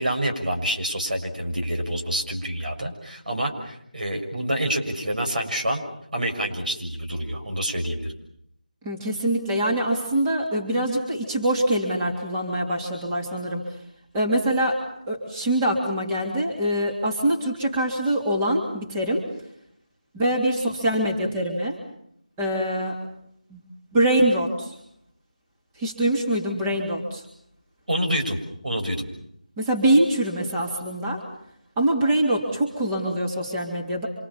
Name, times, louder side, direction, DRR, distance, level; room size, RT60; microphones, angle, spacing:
voice 1, 0.0-5.8 6.1-8.1 27.9-28.4 28.6-29.1, right 1 dB, 75° right, 3 dB, 7.0 m, -27 dB
voice 2, 8.8-13.6 14.1-19.3 20.1-21.8 22.4-22.9 23.5-23.6 23.9-24.7 25.8-27.2 29.6-31.2 31.8-34.1, right 1 dB, 10° right, -1 dB, 3.1 m, -24 dB
27.0 x 26.0 x 7.2 m, 0.72 s
figure-of-eight pair, 165°, 4 cm